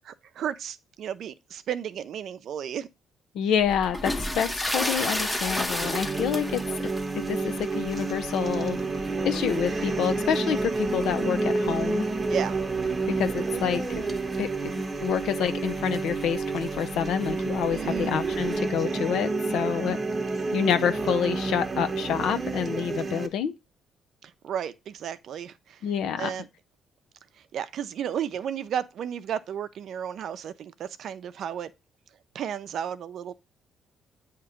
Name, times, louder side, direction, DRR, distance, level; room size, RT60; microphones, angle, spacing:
voice 1, 0.0-2.9 12.3-12.6 17.7-18.1 24.2-25.8 26.2-26.5 27.5-31.7 32.3-33.3, right 9 dB, 70° right, 0.5 m, -33 dB
voice 2, 3.3-6.6 7.3-8.8 9.2-12.1 13.2-13.8 14.4-14.5 14.8-20.0 20.5-23.5 25.8-26.3, left 8 dB, 80° left, 0.6 m, -28 dB
sound 1, 3.6-18.6, left 1 dB, 10° left, 0.8 m, -36 dB
sound 2, 5.8-23.3, right 3 dB, 30° right, 0.9 m, -29 dB
8.6 x 2.9 x 4.8 m
cardioid pair, 90°, 0 cm